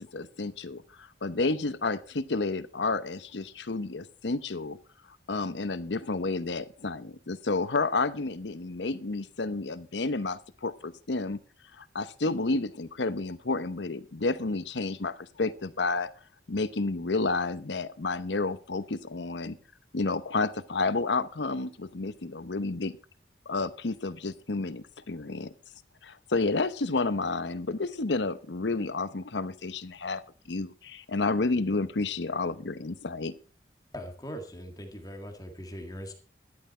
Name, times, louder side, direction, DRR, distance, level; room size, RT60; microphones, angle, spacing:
voice 1, 0.0-4.8 5.3-11.4 11.8-16.1 16.5-19.6 19.9-22.9 23.5-25.5 26.0-33.3, left 3 dB, 85° left, 14 dB, 0.9 m, -30 dB
voice 2, 33.9-36.1, equal, 20° left, 4 dB, 1.9 m, -40 dB
13.0 x 11.0 x 4.4 m, 0.38 s
head